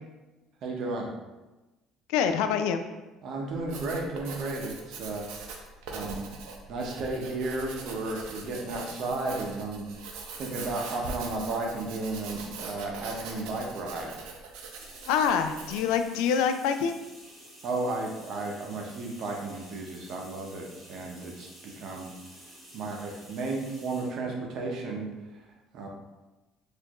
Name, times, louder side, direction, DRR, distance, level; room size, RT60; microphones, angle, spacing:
voice 1, 0.6-1.1 3.2-5.6 5.9-6.3 6.7-9.9 10.4-14.2 17.6-22.1 22.7-25.1 25.7-25.9, right 2 dB, 45° right, 0 dB, 0.6 m, -33 dB
voice 2, 2.1-2.8 15.1-17.0, left 7 dB, 80° left, 8 dB, 0.3 m, -25 dB
Writing, 3.5-16.0, right 4 dB, 85° right, 0.6 m, -42 dB
sound 1, 14.4-24.2, equal, 5° right, 1.3 m, -51 dB
4.2 x 2.5 x 2.9 m, 1.1 s
cardioid pair, 175°, 0 cm